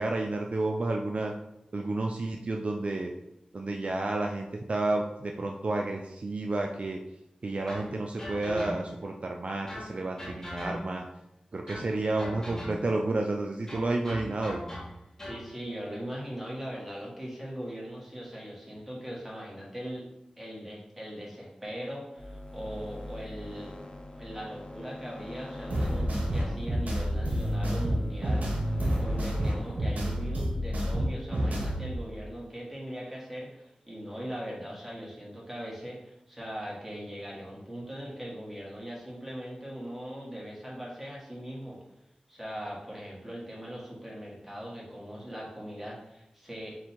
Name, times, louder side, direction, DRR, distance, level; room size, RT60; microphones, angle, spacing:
voice 1, 0.0-1.3 1.7-3.1 3.5-7.0 7.4-11.0 11.5-14.6, right 2 dB, 50° right, 1 dB, 0.4 m, -31 dB
sound 1, 7.7-9.1 9.7-11.1 11.7-13.0 13.7-15.5, equal, 20° left, 1.2 m, -40 dB
voice 2, 15.3-20.0 20.4-23.7 24.1-41.8 42.3-46.8, equal, 10° right, -5 dB, 1.6 m, -40 dB
sound 2, 22.2-30.0, left 1 dB, 40° left, 0.5 m, -41 dB
sound 3, 25.7-31.9, equal, 80° right, 0.8 m, -29 dB
3.8 x 2.6 x 4.4 m, 0.86 s
wide cardioid pair, 55°, 3 cm